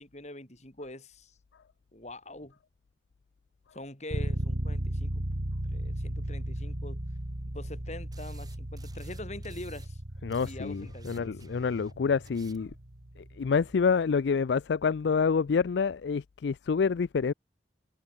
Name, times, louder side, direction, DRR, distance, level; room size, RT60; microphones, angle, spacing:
voice 1, 0.0-1.4 1.9-2.6 3.7-5.2 5.7-7.0 7.5-10.0 10.4-11.3, left 1 dB, 40° left, 7.9 m, -44 dB
sound 1, 4.1-13.8, right 1 dB, 60° right, 2.5 m, -36 dB
sound 2, 8.1-9.9 10.1-12.8, right 5 dB, 20° right, 4.4 m, -57 dB
voice 2, 10.2-12.7 13.4-17.3, left 5 dB, 70° left, 0.4 m, -27 dB
head